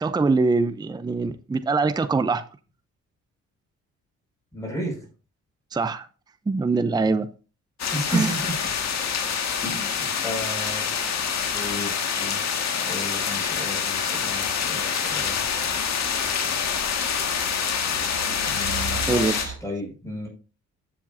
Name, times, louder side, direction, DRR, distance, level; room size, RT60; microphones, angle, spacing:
voice 1, 0.0-2.4 5.7-6.1 6.5-7.3 8.1-8.3 19.1-19.4, right 3 dB, 15° right, 0.6 m, -23 dB
voice 2, 4.5-5.0 7.9-8.6 9.6-10.9 11.5-11.9 12.2-12.4 12.8-15.5 18.5-20.3, equal, 10° left, 5.8 m, -33 dB
sound 1, 7.8-19.4, left 7 dB, 60° left, 1.8 m, -26 dB
sound 2, 11.4-11.5 14.1-19.6, right 6 dB, 60° right, 4.6 m, -39 dB
13.0 x 7.5 x 2.7 m
cardioid pair, 90°, 30 cm